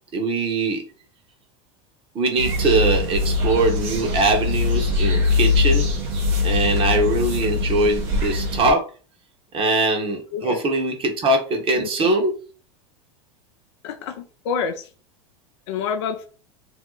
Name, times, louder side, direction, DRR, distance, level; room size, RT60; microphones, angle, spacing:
voice 1, 0.1-0.8 2.1-5.8 6.4-8.8 9.5-12.3, right 2 dB, 35° right, 1.1 m, -21 dB
sound 1, 2.4-8.7, left 4 dB, 65° right, 1.0 m, -22 dB
voice 2, 10.3-10.6 11.7-12.1 13.8-14.9 15.7-16.3, left 6 dB, 65° left, 0.5 m, -28 dB
2.8 x 2.1 x 3.9 m
hypercardioid pair, 90°, 15 cm